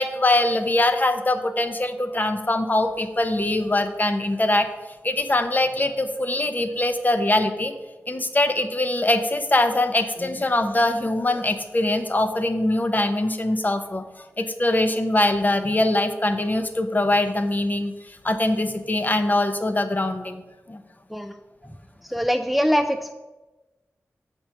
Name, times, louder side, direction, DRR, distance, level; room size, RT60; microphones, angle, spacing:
voice 1, 0.0-4.7 5.0-7.7 8.1-14.0 14.4-17.9 18.2-20.4 20.7-20.8, left 1 dB, 30° left, 8 dB, 0.7 m, -22 dB
voice 2, 22.0-23.1, equal, ahead, 6 dB, 0.4 m, -23 dB
7.5 x 4.5 x 5.7 m, 1.2 s
cardioid pair, 50°, 5 cm